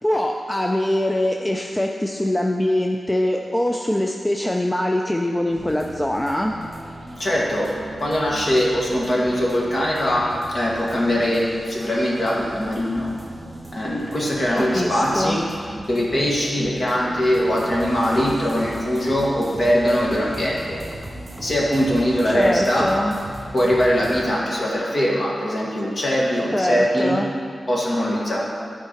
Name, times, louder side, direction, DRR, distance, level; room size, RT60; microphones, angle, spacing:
voice 1, 0.0-6.5 14.6-15.4 22.3-23.2 26.5-27.3, left 1 dB, 10° left, 2 dB, 0.4 m, -23 dB
sound 1, 5.5-24.3, right 1 dB, 25° right, 1.5 m, -38 dB
voice 2, 7.2-7.7 8.0-13.1 13.7-15.4 15.9-20.8 21.4-22.9 23.5-27.2 27.7-28.4, equal, 45° left, -4 dB, 1.6 m, -21 dB
12.0 x 4.7 x 4.4 m, 2.2 s
wide cardioid pair, 130°, 0 cm